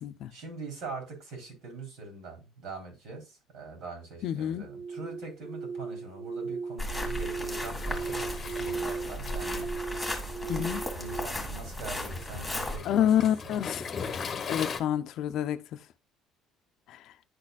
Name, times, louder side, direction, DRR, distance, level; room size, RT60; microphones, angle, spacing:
voice 1, 0.3-9.7 10.9-13.1 13.4-13.6, right 3 dB, 70° right, 3.5 m, -43 dB
voice 2, 4.2-4.7 10.4-10.8 12.8-13.8 14.5-15.6 16.9-17.0, left 10 dB, 60° left, 0.5 m, -28 dB
sound 1, 4.6-11.3, right 5 dB, 25° right, 0.7 m, -37 dB
sound 2, 6.8-12.8, left 1 dB, 5° left, 1.9 m, -35 dB
Waves surf, 7.7-14.8, left 5 dB, 30° left, 0.9 m, -40 dB
10.5 x 4.1 x 2.4 m
cardioid pair, 150°, 0 cm